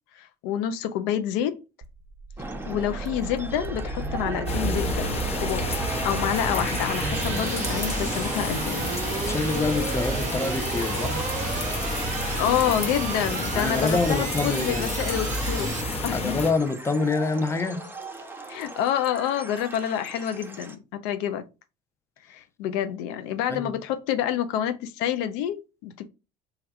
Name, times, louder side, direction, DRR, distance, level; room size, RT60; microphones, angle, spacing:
voice 1, 0.1-1.5 2.7-5.7 6.0-8.8 12.4-15.7 16.0-16.4 18.5-21.4 22.3-26.1, left 10 dB, 70° left, 0.5 m, -28 dB
sound 1, 1.8-16.0, right 5 dB, 40° right, 0.8 m, -34 dB
sound 2, 2.4-20.7, right 2 dB, 10° right, 0.9 m, -40 dB
sound 3, 4.5-16.5, left 1 dB, 30° left, 1.0 m, -29 dB
voice 2, 9.2-11.2 13.5-14.9 16.1-17.9 23.5-23.7, left 3 dB, 15° left, 0.5 m, -26 dB
3.3 x 2.3 x 4.0 m
hypercardioid pair, 65°, 20 cm